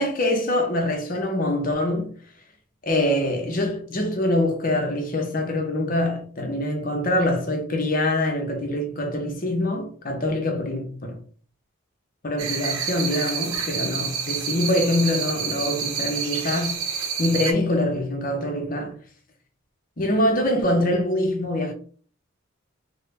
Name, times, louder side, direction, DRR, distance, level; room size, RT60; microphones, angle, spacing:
voice 1, 0.0-2.2 2.8-11.2 12.2-19.0 20.0-21.7, left 1 dB, 40° left, 0.7 m, -24 dB
sound 1, 12.4-17.5, right 6 dB, 90° right, 0.7 m, -28 dB
3.7 x 2.1 x 3.2 m
head